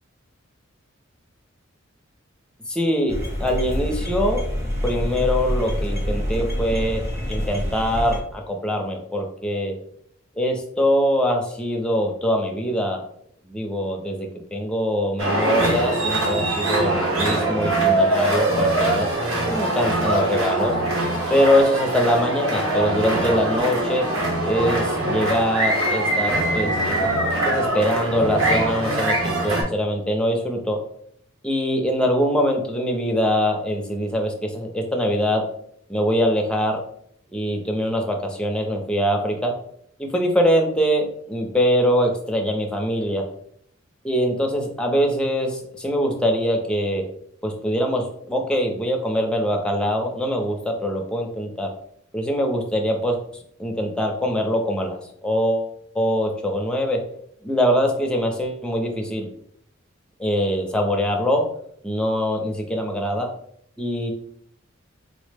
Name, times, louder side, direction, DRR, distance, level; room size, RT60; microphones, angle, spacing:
voice 1, 2.7-4.4 4.8-7.0 7.3-9.7 10.4-13.0 13.5-19.1 19.5-20.7 21.3-24.1 24.4-27.1 27.4-30.8 31.4-35.4 35.9-36.8 37.3-39.5 40.0-43.2 44.0-47.0 47.4-51.7 52.1-53.2 53.6-55.7 55.9-57.0 57.4-59.3 60.2-61.4 61.8-63.3 63.8-64.1, equal, 5° left, 1 dB, 0.5 m, -23 dB
sound 1, 3.1-8.2, equal, 15° right, 0.8 m, -26 dB
sound 2, 15.2-29.6, right 1 dB, 85° right, 1.0 m, -22 dB
4.1 x 2.0 x 3.2 m, 0.67 s
head